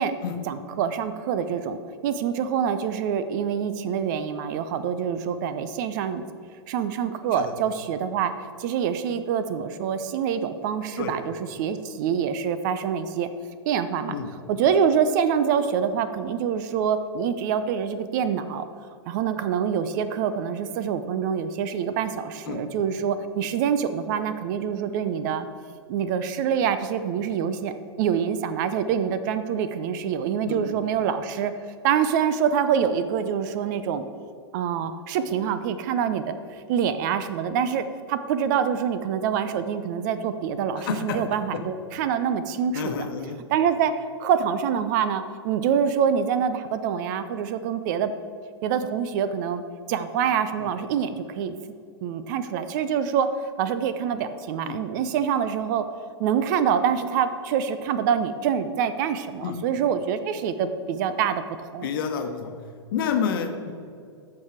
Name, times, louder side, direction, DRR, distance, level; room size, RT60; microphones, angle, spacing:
voice 1, 0.5-6.2 6.7-8.3 8.6-13.3 13.7-14.2 14.5-18.6 19.1-25.5 25.9-31.5 31.8-34.1 34.5-43.1 43.5-43.9 44.2-48.1 48.6-49.6 49.9-51.5 52.0-53.3 53.6-55.8 56.2-61.9, right 8 dB, 45° right, 11 dB, 0.6 m, -25 dB
voice 2, 30.5-30.8 40.8-41.2 42.7-43.4 50.6-50.7 54.6-54.8 59.4-59.6 61.8-62.5 62.9-63.7, left 7 dB, 50° left, 5 dB, 1.1 m, -29 dB
13.5 x 4.8 x 4.9 m, 2.3 s
figure-of-eight pair, 100°, 14 cm